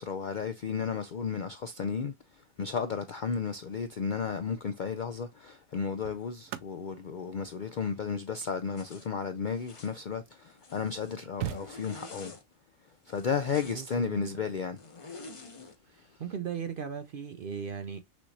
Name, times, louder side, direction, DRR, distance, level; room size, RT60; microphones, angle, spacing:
voice 1, 0.0-12.3 13.1-14.8 15.9-16.2, left 6 dB, 65° left, 0.4 m, -33 dB
sound 1, 4.6-4.7 5.6-10.2 10.8-10.9 11.0-12.3 14.0-14.2, right 11 dB, 80° right, 1.0 m, -43 dB
Zipper (clothing), 8.7-9.1 9.5-10.0 10.5-11.2 11.5-12.4 13.1-14.0 14.8-15.8, left 3 dB, 30° left, 0.7 m, -48 dB
voice 2, 13.7-14.3 15.9-18.0, right 7 dB, 60° right, 0.6 m, -38 dB
6.3 x 3.0 x 2.7 m
omnidirectional pair, 1.4 m